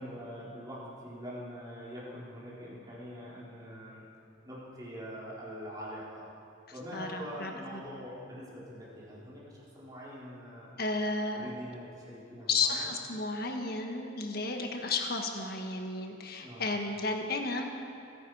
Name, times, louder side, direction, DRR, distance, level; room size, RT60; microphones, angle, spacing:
voice 1, 0.0-4.0 4.4-6.3 6.7-10.7 11.4-12.9 16.4-16.6, equal, 20° right, -7 dB, 4.1 m, -44 dB
voice 2, 6.9-7.8 10.8-11.5 12.5-17.6, left 3 dB, 55° left, 3 dB, 1.5 m, -33 dB
23.0 x 10.5 x 4.9 m, 2.6 s
head